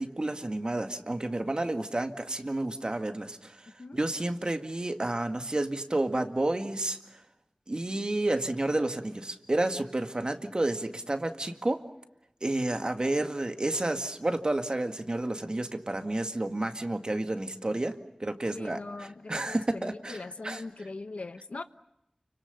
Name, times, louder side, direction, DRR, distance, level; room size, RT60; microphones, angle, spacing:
voice 1, 0.0-3.6 3.9-7.0 7.7-11.8 12.4-20.6, right 2 dB, 45° right, 2.0 m, -30 dB
voice 2, 18.5-21.6, left 3 dB, 85° left, 1.1 m, -41 dB
29.5 x 25.5 x 6.9 m
wide cardioid pair, 65°, 2 cm